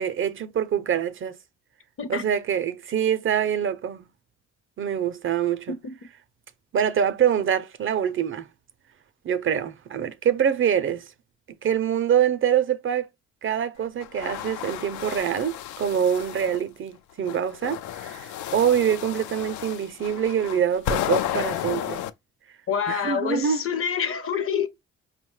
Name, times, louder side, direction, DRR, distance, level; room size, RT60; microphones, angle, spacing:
voice 1, 0.0-1.4 2.1-4.1 4.8-5.7 6.7-8.5 9.2-11.0 11.6-13.1 13.4-22.0 22.9-23.6, right 8 dB, 45° right, 0.5 m, -25 dB
sound 1, 14.0-16.6 17.2-22.1, left 11 dB, 75° left, 0.4 m, -32 dB
voice 2, 22.7-24.7, left 7 dB, 45° left, 0.8 m, -27 dB
4.9 x 2.1 x 3.1 m
cardioid pair, 90°, 30 cm